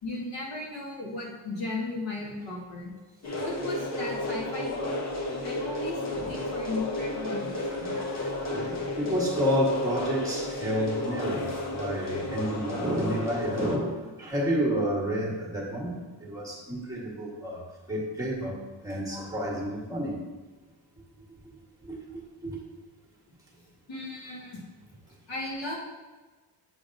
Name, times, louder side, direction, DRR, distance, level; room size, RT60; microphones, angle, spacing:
voice 1, 0.0-2.9 3.4-4.9 5.4-7.9 11.5-11.6 23.9-24.6 25.3-25.7, left 2 dB, 80° left, -3 dB, 1.7 m, -36 dB
sound 1, 3.2-13.8, left 2 dB, 35° left, 0.8 m, -33 dB
voice 2, 7.7-20.2 21.9-22.0 22.4-22.6, equal, 10° right, -2 dB, 1.3 m, -30 dB
7.5 x 5.1 x 2.6 m, 1.3 s
wide cardioid pair, 155°, 44 cm